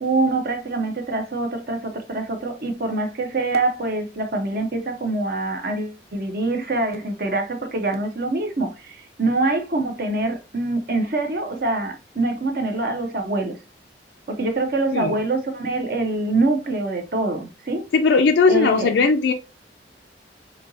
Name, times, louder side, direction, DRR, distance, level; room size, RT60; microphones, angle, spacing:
voice 1, 0.0-13.6 14.3-17.9 18.5-18.9, right 2 dB, 55° right, 0.8 m, -24 dB
voice 2, 17.9-19.3, left 4 dB, 80° left, 0.4 m, -18 dB
4.3 x 2.8 x 2.7 m
head